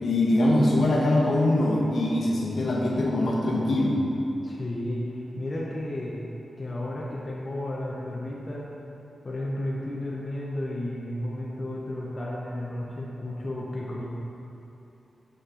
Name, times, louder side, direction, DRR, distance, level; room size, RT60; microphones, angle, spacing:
voice 1, 0.0-4.0, left 1 dB, 60° left, -4 dB, 1.0 m, -23 dB
voice 2, 4.4-6.2 6.6-8.7 9.2-14.0, left 1 dB, 25° left, -5 dB, 0.6 m, -33 dB
6.5 x 5.4 x 3.7 m, 2.9 s
wide cardioid pair, 165°, 0 cm